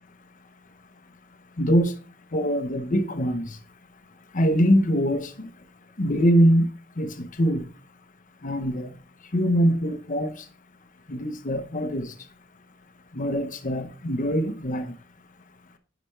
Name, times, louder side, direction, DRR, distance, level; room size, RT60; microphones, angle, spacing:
voice 1, 1.6-1.9 2.3-3.6 4.3-5.5 6.0-7.7 8.4-8.9 9.3-10.5 11.1-12.1 13.1-14.9, equal, 40° left, 0.9 m, -23 dB
10.0 x 5.1 x 3.2 m
head